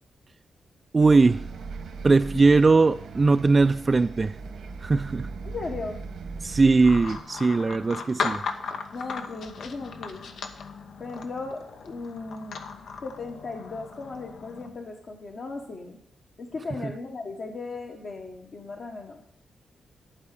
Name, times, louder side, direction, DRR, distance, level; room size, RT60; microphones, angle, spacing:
voice 1, 0.9-1.4 2.0-4.3 4.8-5.3 6.4-8.4, right 3 dB, 30° right, 9 dB, 0.3 m, -20 dB
Bus, 1.0-7.2, right 4 dB, 85° right, 1.3 m, -38 dB
voice 2, 5.4-6.0 8.9-10.3 11.0-12.6 13.0-16.0 16.4-19.2, left 3 dB, 55° left, 0 dB, 1.2 m, -37 dB
sound 1, 6.8-14.7, left 5 dB, 90° left, 0.9 m, -37 dB
11.5 x 4.9 x 8.4 m, 0.69 s
wide cardioid pair, 110°, 0 cm